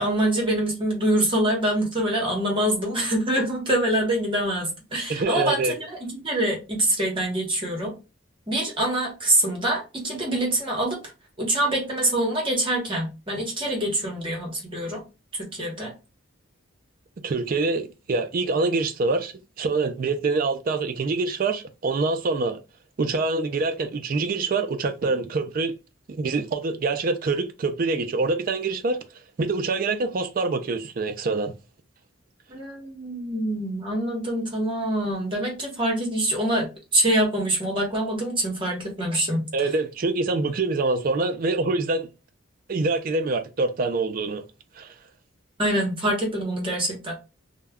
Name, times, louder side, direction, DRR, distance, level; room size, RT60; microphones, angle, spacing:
voice 1, 0.0-5.8 6.0-7.9 8.5-11.0 11.4-15.0 15.4-15.9 32.5-39.4 45.6-47.1, right 1 dB, 25° right, 0.9 m, -25 dB
voice 2, 5.1-5.8 17.2-22.6 23.0-25.7 26.1-29.0 29.4-31.5 39.5-42.1 42.7-44.4 44.8-44.9, right 3 dB, 45° right, 0.3 m, -25 dB
2.2 x 2.1 x 3.4 m
head